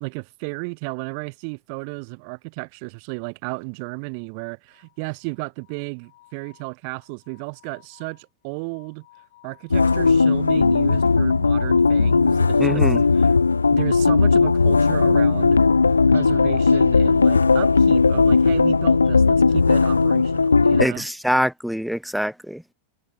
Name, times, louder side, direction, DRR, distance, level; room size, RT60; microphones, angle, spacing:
voice 1, 0.0-9.1 9.4-12.9 13.1-13.3 13.7-15.6 16.1-21.1, right 38 dB, 45° right, 0.7 m, -33 dB
sound 1, 4.7-12.8 14.0-15.3 16.0-18.0 19.2-20.6, left 17 dB, 55° left, 6.4 m, -55 dB
sound 2, 9.7-20.9, left 4 dB, 75° left, 0.4 m, -17 dB
voice 2, 12.6-13.0 20.8-22.6, equal, ahead, 0.6 m, -24 dB
figure-of-eight pair, 90°, 0 cm